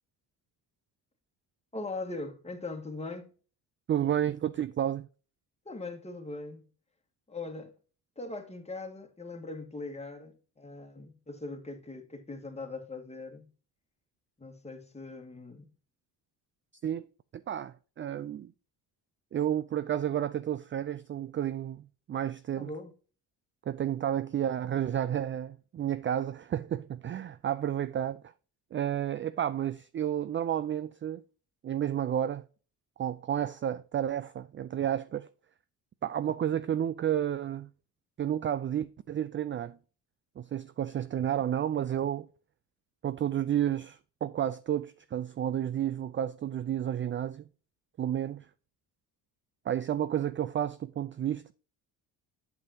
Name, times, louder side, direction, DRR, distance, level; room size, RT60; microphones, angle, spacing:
voice 1, 1.7-3.3 5.7-6.7 7.3-7.7 8.2-13.5 14.4-15.7 22.6-22.9, left 3 dB, 15° left, 1.8 m, -40 dB
voice 2, 3.9-5.1 16.8-17.1 17.5-18.5 19.3-22.7 23.7-28.2 28.7-31.2 31.6-32.4 33.0-35.3 36.0-37.7 38.2-39.8 40.4-42.3 43.0-47.4 48.0-48.5 49.7-51.5, right 10 dB, 30° right, 0.4 m, -31 dB
8.1 x 7.0 x 2.8 m
cardioid pair, 85°, 41 cm